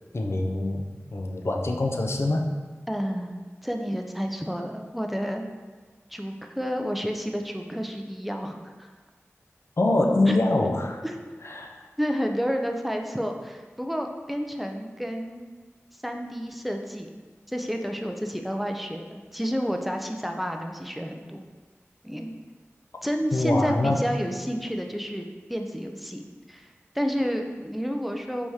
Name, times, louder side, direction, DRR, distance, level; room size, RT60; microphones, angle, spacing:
voice 1, 0.1-0.8 1.1-2.5 9.8-11.0 11.4-11.8 23.3-24.0, left 2 dB, 60° left, 2 dB, 0.4 m, -24 dB
voice 2, 2.9-5.5 6.1-8.9 10.3-10.4 11.0-11.2 12.0-15.4 16.0-17.2 17.5-21.5 22.0-22.3 23.0-28.5, equal, ahead, 3 dB, 0.4 m, -30 dB
4.6 x 3.5 x 2.8 m, 1.3 s
wide cardioid pair, 50°, 5 cm